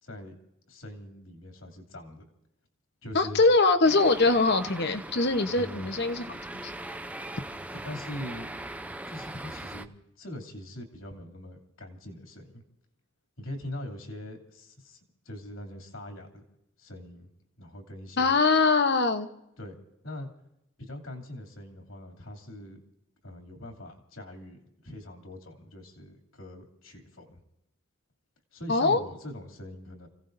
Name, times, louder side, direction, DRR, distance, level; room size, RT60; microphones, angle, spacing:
voice 1, 0.0-0.4 0.7-2.2 3.0-3.4 5.6-5.9 7.7-8.5 9.1-9.9 10.2-12.6 13.4-16.4 16.8-17.3 17.6-18.4 19.6-19.8 20.0-20.3 20.8-22.8 23.2-27.4 28.5-30.1, left 1 dB, 70° left, 3 dB, 2.8 m, -42 dB
voice 2, 3.1-6.2 6.5-6.7 18.2-19.3 28.7-29.0, left 3 dB, 50° left, 8 dB, 1.0 m, -23 dB
sound 1, 3.8-9.9, right 1 dB, 5° right, 0.5 m, -40 dB
29.5 x 17.0 x 2.6 m, 0.84 s
head